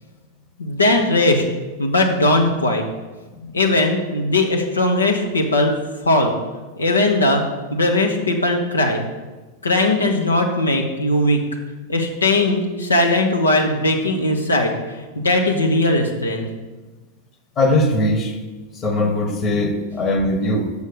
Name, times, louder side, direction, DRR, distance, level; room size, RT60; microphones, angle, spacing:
voice 1, 0.6-1.4 1.8-2.8 3.5-5.7 6.1-6.4 6.8-7.4 7.7-9.0 9.6-11.4 11.9-14.8 15.1-16.5, left 2 dB, 80° left, 2 dB, 1.0 m, -18 dB
voice 2, 17.6-18.3 18.7-20.7, left 1 dB, 30° left, 6 dB, 1.2 m, -20 dB
6.8 x 6.4 x 6.8 m, 1.2 s
figure-of-eight pair, 90°, 0 cm